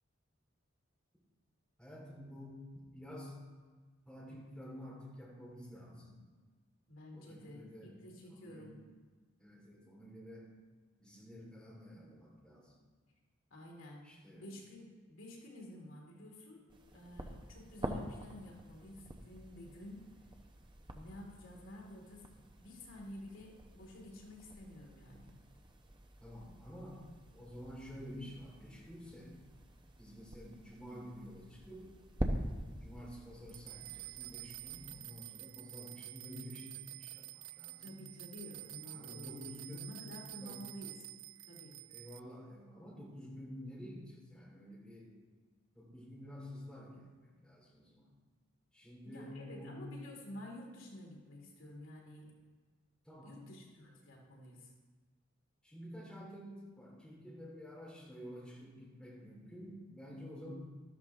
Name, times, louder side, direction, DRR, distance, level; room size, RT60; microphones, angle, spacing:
voice 1, 1.8-3.4 4.0-6.2 7.1-7.9 8.3-8.8 9.4-10.5 11.0-12.7 14.0-14.5 26.2-27.1 27.3-29.3 30.0-31.9 32.8-37.9 38.8-39.9 40.4-40.6 41.9-45.1 45.7-48.1 48.7-49.8 53.0-53.4 55.6-60.5, equal, 5° left, -6 dB, 3.8 m, -50 dB
voice 2, 6.9-8.8 13.5-14.1 14.3-16.6 16.9-20.0 20.9-22.3 22.6-25.3 37.8-41.0 41.4-41.8 49.0-52.3 53.2-54.7, left 1 dB, 80° left, -1 dB, 2.6 m, -51 dB
sound 1, 16.7-35.0, right 1 dB, 25° right, 0.9 m, -46 dB
sound 2, 33.5-42.2, right 18 dB, 80° right, 0.4 m, -49 dB
13.0 x 13.0 x 3.5 m, 1.4 s
head